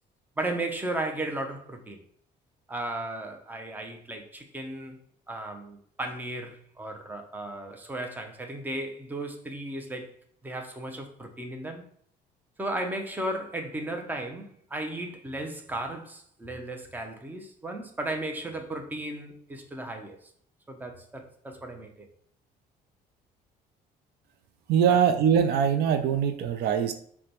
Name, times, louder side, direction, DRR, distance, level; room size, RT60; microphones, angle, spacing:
voice 1, 0.4-2.0 2.7-5.0 5.3-10.1 10.4-11.8 12.6-20.2 20.7-22.1 24.9-25.0, right 1 dB, 10° right, 0.6 m, -35 dB
voice 2, 24.7-26.9, right 8 dB, 70° right, 0.5 m, -22 dB
4.8 x 2.2 x 2.9 m
cardioid pair, 110°, 17 cm